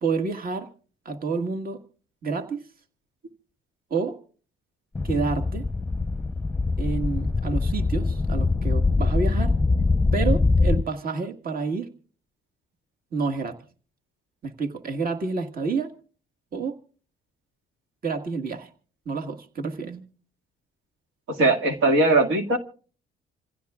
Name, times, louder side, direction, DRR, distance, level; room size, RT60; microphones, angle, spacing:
voice 1, 0.0-0.7 1.0-1.8 2.2-2.6 3.9-4.2 5.0-5.6 6.8-9.5 10.1-11.9 13.1-13.6 14.4-15.9 16.5-16.8 18.0-18.7 19.0-20.0, right 4 dB, 45° right, 5 dB, 1.7 m, -29 dB
sound 1, 4.9-10.8, left 3 dB, 10° left, 0.8 m, -23 dB
voice 2, 21.3-22.6, right 2 dB, 85° right, 4 dB, 2.1 m, -20 dB
27.5 x 16.0 x 2.4 m, 0.41 s
cardioid pair, 90°, 20 cm